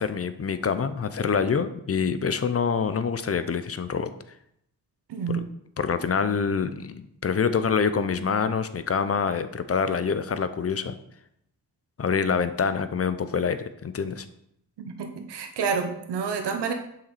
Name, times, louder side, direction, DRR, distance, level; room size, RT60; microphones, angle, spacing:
voice 1, 0.0-4.1 5.3-5.4 5.8-10.9 12.0-14.3, left 6 dB, 35° left, 12 dB, 0.7 m, -26 dB
voice 2, 5.1-5.4 14.8-16.7, right 6 dB, 80° right, 6 dB, 1.1 m, -29 dB
7.3 x 5.9 x 4.2 m, 0.76 s
cardioid pair, 65°, 40 cm